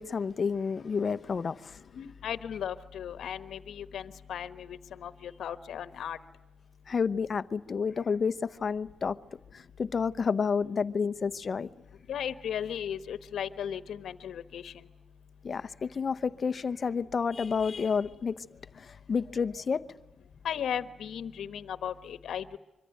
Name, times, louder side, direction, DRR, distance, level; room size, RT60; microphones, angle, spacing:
voice 1, 0.0-1.8 6.9-9.2 9.5-11.7 15.4-18.4 18.7-19.8, left 5 dB, 45° left, 0.9 m, -30 dB
voice 2, 1.9-6.2 12.1-14.8 20.4-22.6, left 9 dB, 85° left, 1.2 m, -36 dB
25.5 x 24.0 x 9.2 m
cardioid pair, 115°, 0 cm